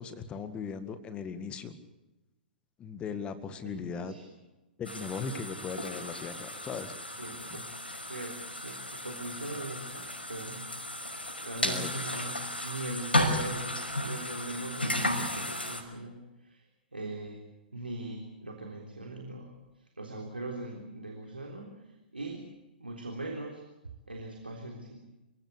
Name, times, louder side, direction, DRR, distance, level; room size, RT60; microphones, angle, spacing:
voice 1, 0.0-1.8 2.8-4.2 4.8-6.9 11.6-11.9, left 5 dB, 20° left, 11 dB, 2.0 m, -38 dB
voice 2, 3.6-4.2 7.1-7.7 8.0-10.7 11.4-17.4 17.7-22.5 22.8-23.6 24.1-25.1, right 2 dB, 80° right, 2 dB, 3.6 m, -41 dB
sound 1, 4.8-15.8, left 1 dB, 80° left, 5.8 m, -34 dB
28.0 x 16.5 x 8.3 m, 1.1 s
figure-of-eight pair, 110°, 5 cm